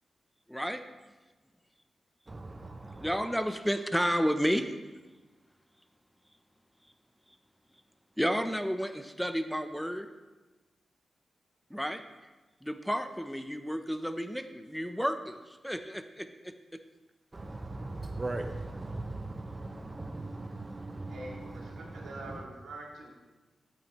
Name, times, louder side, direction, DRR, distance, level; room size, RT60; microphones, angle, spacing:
voice 1, 0.5-0.8 3.0-4.7 8.2-10.1 11.7-12.0 12.6-16.5, equal, ahead, 8 dB, 0.6 m, -31 dB
voice 2, 2.3-3.1 17.3-22.4, right 2 dB, 30° right, 5 dB, 0.7 m, -39 dB
voice 3, 21.1-23.1, right 2 dB, 90° right, -2 dB, 2.1 m, -45 dB
13.5 x 7.7 x 3.1 m, 1.2 s
cardioid pair, 60°, 0 cm